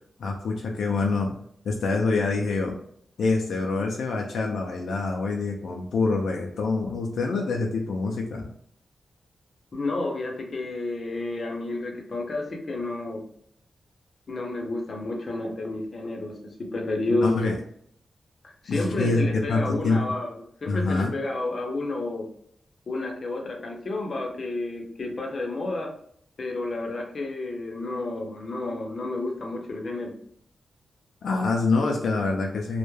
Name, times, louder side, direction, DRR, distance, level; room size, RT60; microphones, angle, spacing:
voice 1, 0.2-1.3 1.6-2.8 3.2-8.5 17.2-17.6 18.7-20.2 20.7-21.1 31.2-32.8, left 3 dB, 90° left, 1 dB, 0.3 m, -26 dB
voice 2, 9.7-13.2 14.3-17.4 18.4-22.3 22.9-25.9 26.4-30.1, left 2 dB, 55° left, 1 dB, 0.6 m, -30 dB
2.2 x 2.1 x 3.0 m, 0.65 s
wide cardioid pair, 95°, 0 cm